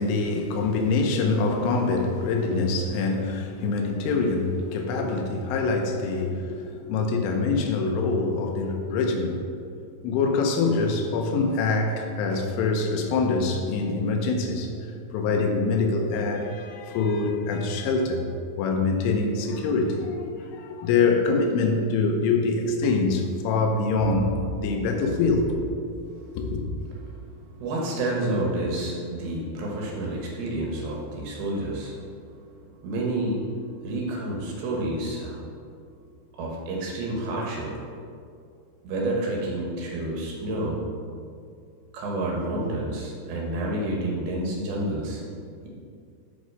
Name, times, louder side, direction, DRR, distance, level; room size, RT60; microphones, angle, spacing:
voice 1, 0.0-9.4 10.0-14.7 15.1-18.3 18.6-25.6 26.3-26.6, left 3 dB, 80° left, 3 dB, 3.3 m, -24 dB
voice 2, 26.1-26.4 27.1-32.0 32.2-32.4 32.6-35.4 36.3-37.7 38.8-40.8 41.9-45.2, right 1 dB, 70° right, -2 dB, 3.4 m, -29 dB
8.3 x 6.0 x 6.2 m, 2.3 s
omnidirectional pair, 5.6 m